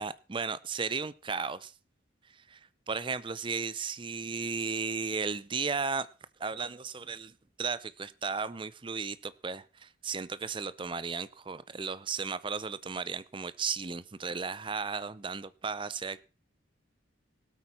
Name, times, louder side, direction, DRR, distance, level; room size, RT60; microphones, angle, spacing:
voice 1, 0.0-1.7 2.5-2.6 2.9-6.1 6.4-7.3 7.6-16.2, right 5 dB, 25° right, 17 dB, 0.5 m, -35 dB
18.0 x 8.4 x 4.3 m, 0.34 s
head